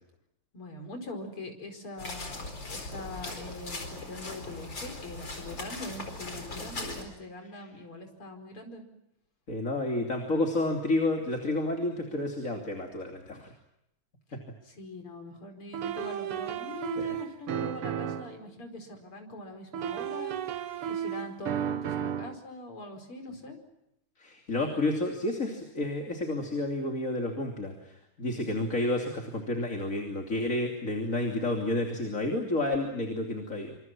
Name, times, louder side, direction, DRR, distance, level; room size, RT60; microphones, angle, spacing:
voice 1, 0.5-8.9 14.6-23.6 28.3-28.6, left 2 dB, 80° left, 4 dB, 5.8 m, -43 dB
sound 1, 2.0-7.0, left 2 dB, 55° left, 5.4 m, -39 dB
voice 2, 9.5-13.5 17.0-17.2 24.2-33.8, left 2 dB, 35° left, 2 dB, 3.3 m, -30 dB
sound 2, 15.7-18.4 19.7-22.4, right 9 dB, 85° right, 2.0 m, -33 dB
28.0 x 26.5 x 6.1 m, 0.85 s
omnidirectional pair, 2.4 m